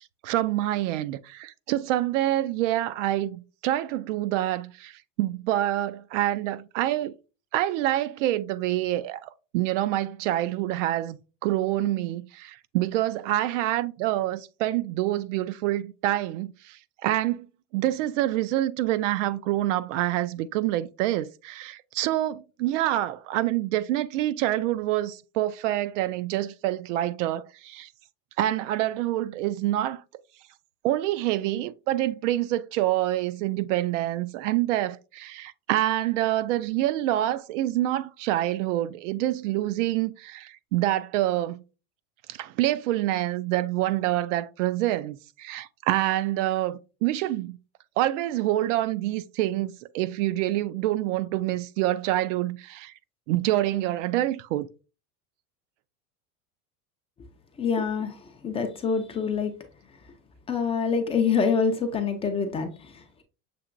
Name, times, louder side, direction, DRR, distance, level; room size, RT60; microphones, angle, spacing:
voice 1, 0.0-7.1 7.5-17.5 17.7-27.9 28.4-30.0 30.8-41.6 42.3-47.6 48.0-52.9 53.3-54.7, right 14 dB, 70° right, 0.5 m, -27 dB
voice 2, 57.6-58.2 58.4-59.5 60.5-63.2, left 5 dB, 15° left, 0.4 m, -26 dB
6.8 x 2.9 x 2.5 m
supercardioid pair, 140°, 38 cm